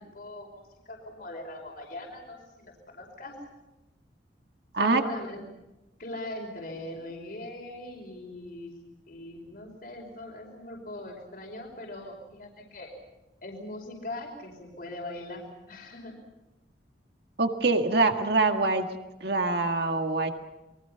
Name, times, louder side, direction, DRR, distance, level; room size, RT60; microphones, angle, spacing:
voice 1, 0.0-3.4 4.8-5.4 6.0-8.8 9.1-12.9 13.4-16.2, left 1 dB, 55° left, 1 dB, 5.3 m, -41 dB
voice 2, 17.4-18.9 19.2-20.3, right 3 dB, 65° right, 5 dB, 1.8 m, -24 dB
28.5 x 23.5 x 5.8 m, 1.0 s
head